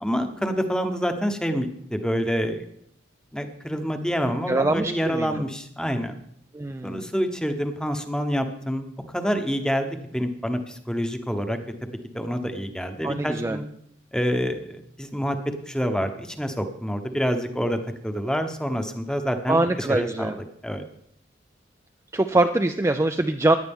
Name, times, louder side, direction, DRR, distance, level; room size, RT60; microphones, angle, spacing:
voice 1, 0.0-2.6 3.3-6.2 6.8-8.9 9.1-11.6 12.1-13.6 14.1-15.4 15.7-17.8 18.0-20.3 20.6-20.8, equal, 5° left, 7 dB, 0.9 m, -27 dB
voice 2, 4.5-5.4 6.5-7.1 13.0-13.6 19.5-20.4 22.1-23.6, right 2 dB, 15° right, 7 dB, 0.4 m, -23 dB
17.0 x 10.5 x 3.6 m, 0.71 s
head